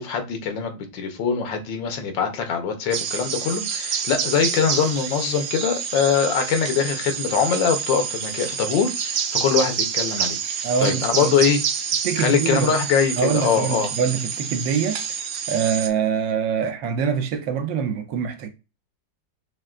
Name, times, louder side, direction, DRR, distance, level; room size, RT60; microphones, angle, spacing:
voice 1, 0.0-10.4 10.8-11.6 12.2-13.9, left 6 dB, 85° left, 1.6 m, -23 dB
sound 1, 2.9-15.9, right 7 dB, 65° right, 0.9 m, -28 dB
voice 2, 10.6-11.3 12.0-12.7 13.2-15.0 15.5-18.5, right 7 dB, 85° right, 1.4 m, -24 dB
6.1 x 2.1 x 2.4 m
omnidirectional pair, 2.0 m